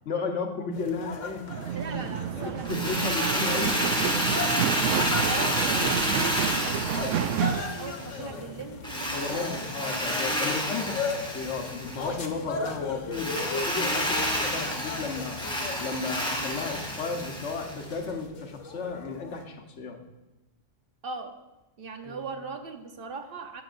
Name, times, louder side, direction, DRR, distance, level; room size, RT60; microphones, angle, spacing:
voice 1, 0.0-1.5 1.8-2.1 2.4-3.8 8.2-8.4 9.1-15.5 15.8-20.0 22.0-22.2, left 4 dB, 70° left, 3 dB, 1.4 m, -34 dB
sound 1, 0.7-19.5, left 4 dB, 85° left, 1.3 m, -38 dB
sound 2, 1.5-7.6, right 9 dB, 80° right, 0.9 m, -29 dB
voice 2, 1.6-4.1 5.3-9.7 21.0-21.4 21.8-23.6, right 4 dB, 50° right, 5 dB, 1.0 m, -40 dB
Drill, 2.6-8.2 8.8-12.1 13.1-17.9, equal, 5° left, 1.3 m, -30 dB
16.5 x 6.9 x 2.6 m, 1.0 s
omnidirectional pair, 1.3 m